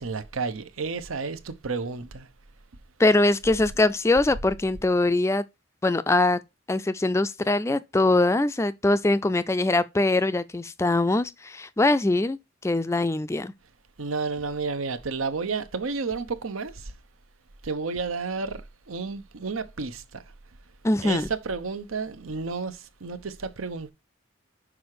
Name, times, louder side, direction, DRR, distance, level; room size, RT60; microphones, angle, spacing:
voice 1, 0.0-2.3 14.0-16.9 17.6-20.2 21.0-23.9, right 4 dB, 90° right, 0.8 m, -31 dB
voice 2, 3.0-5.4 5.8-6.4 6.7-12.4 12.6-13.5 20.8-21.3, left 2 dB, 15° left, 0.3 m, -22 dB
6.1 x 4.8 x 4.7 m
head